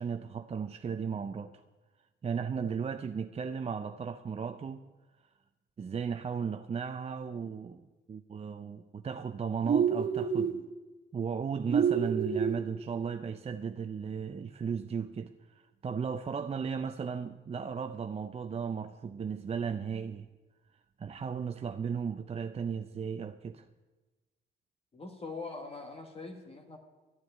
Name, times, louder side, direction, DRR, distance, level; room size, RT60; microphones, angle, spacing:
voice 1, 0.0-1.6 2.2-4.8 5.8-7.8 8.1-10.6 11.1-20.3 21.0-23.6, right 6 dB, 30° right, 0.6 m, -35 dB
sound 1, 9.6-10.6 11.7-12.6, right 7 dB, 45° right, 1.9 m, -27 dB
voice 2, 24.9-26.8, left 3 dB, 30° left, 1.8 m, -42 dB
13.0 x 7.7 x 9.9 m
cardioid pair, 90°, 20 cm